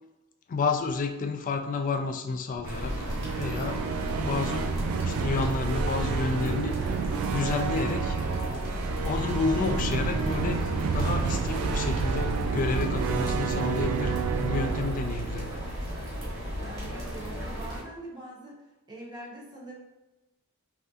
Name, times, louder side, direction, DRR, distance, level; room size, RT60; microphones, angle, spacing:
voice 1, 0.5-3.0 3.4-4.7 5.0-7.0 7.3-8.2 9.0-15.5, left 4 dB, 40° left, 5 dB, 0.3 m, -30 dB
sound 1, 2.5-16.6, right 5 dB, 90° right, 0.3 m, -30 dB
sound 2, 2.6-17.8, equal, 50° right, 1.2 m, -34 dB
voice 2, 16.6-18.5 18.9-19.7, right 1 dB, 20° right, -4 dB, 0.7 m, -43 dB
3.2 x 2.7 x 2.3 m, 1.1 s
head